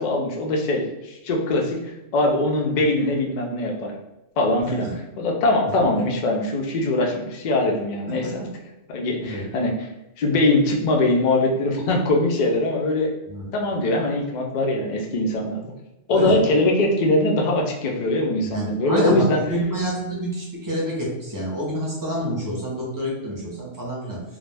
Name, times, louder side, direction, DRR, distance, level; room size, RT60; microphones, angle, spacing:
voice 1, 0.0-3.9 4.4-4.9 5.2-8.4 8.9-9.7 10.2-13.1 13.5-15.6 16.1-19.4, left 2 dB, 60° left, 0 dB, 0.4 m, -22 dB
voice 2, 4.6-4.9 8.1-8.5 9.2-9.5 13.3-13.5 16.1-16.4 18.4-24.2, right 1 dB, 25° right, -4 dB, 0.5 m, -28 dB
2.3 x 2.1 x 3.2 m, 0.93 s
omnidirectional pair, 1.3 m